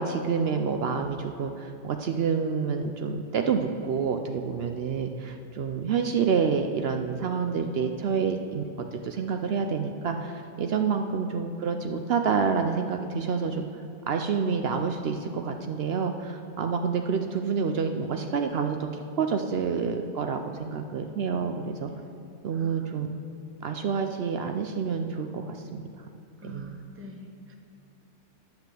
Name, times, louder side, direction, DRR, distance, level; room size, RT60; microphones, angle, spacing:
voice 1, 0.0-8.6 8.9-13.7 14.1-18.9 19.2-21.9 22.4-23.1 23.6-25.9 26.4-26.8, right 6 dB, 65° right, 5 dB, 0.8 m, -28 dB
voice 2, 10.6-10.9 22.5-23.1 26.4-27.5, right 1 dB, 15° right, 2 dB, 0.8 m, -45 dB
10.5 x 5.9 x 7.5 m, 2.7 s
omnidirectional pair, 1.2 m